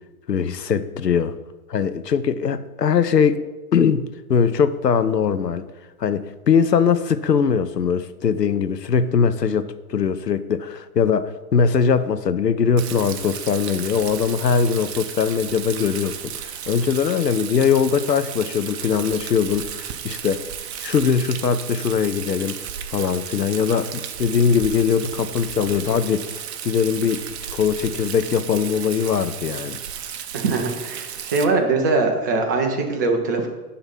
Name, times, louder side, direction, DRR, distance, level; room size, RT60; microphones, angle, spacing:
voice 1, 0.3-1.3 1.7-3.4 3.7-5.7 6.0-20.5 20.8-22.6 22.9-26.3 26.6-27.2 27.5-29.8, left 6 dB, 85° left, 0.8 m, -21 dB
Rain, 12.8-31.4, right 9 dB, 45° right, 0.8 m, -34 dB
voice 2, 30.3-33.5, right 3 dB, 15° right, 0.4 m, -22 dB
9.9 x 3.9 x 5.7 m
figure-of-eight pair, 115°, 47 cm